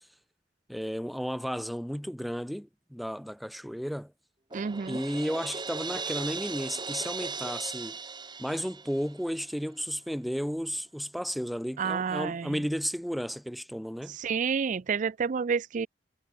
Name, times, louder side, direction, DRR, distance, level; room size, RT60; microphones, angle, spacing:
voice 1, 0.7-4.1 4.9-8.0 8.4-14.2, equal, ahead, 2.2 m, -33 dB
Crash cymbal, 4.5-9.4, right 4 dB, 25° right, 3.6 m, -38 dB
voice 2, 4.5-5.0 11.8-12.6 14.1-15.9, right 6 dB, 45° right, 0.4 m, -29 dB
head